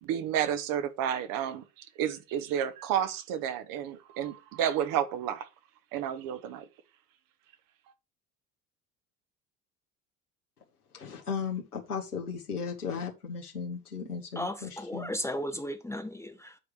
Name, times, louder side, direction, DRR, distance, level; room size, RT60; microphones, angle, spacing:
voice 1, 0.0-5.5 5.9-6.7, right 9 dB, 50° right, 1.2 m, -31 dB
voice 2, 10.9-15.1, left 6 dB, 85° left, 1.4 m, -36 dB
voice 3, 14.4-16.6, equal, 5° left, 0.8 m, -35 dB
9.5 x 4.7 x 4.9 m
figure-of-eight pair, 65°, 44 cm